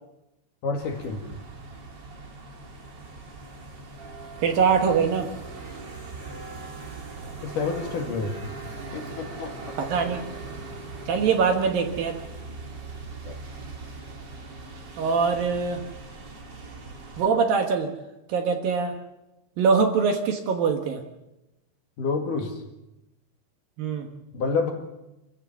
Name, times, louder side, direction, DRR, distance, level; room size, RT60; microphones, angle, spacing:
voice 1, 0.6-1.2 7.4-8.4 8.9-9.8 13.2-13.3 22.0-22.6 24.3-24.7, left 4 dB, 55° left, 3 dB, 3.1 m, -28 dB
sound 1, 0.8-17.3, right 3 dB, 35° right, 2.1 m, -40 dB
voice 2, 4.4-5.3 9.8-10.2 11.1-12.2 15.0-15.8 17.2-17.9 18.3-19.0 19.6-21.0 23.8-24.1, right 5 dB, 65° right, 5 dB, 2.7 m, -23 dB
27.0 x 14.5 x 7.2 m, 0.95 s
omnidirectional pair, 5.0 m